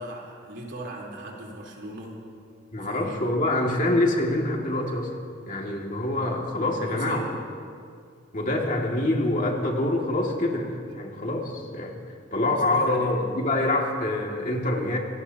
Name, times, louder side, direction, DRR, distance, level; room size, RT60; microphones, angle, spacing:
voice 1, 0.0-2.2 2.8-3.1 6.8-7.3 12.4-13.1, right 1 dB, 65° right, -3 dB, 3.6 m, -39 dB
voice 2, 2.7-5.1 5.5-7.3 8.3-12.0 12.3-15.0, left 1 dB, 45° left, -1 dB, 2.2 m, -25 dB
26.5 x 17.5 x 2.9 m, 2.1 s
head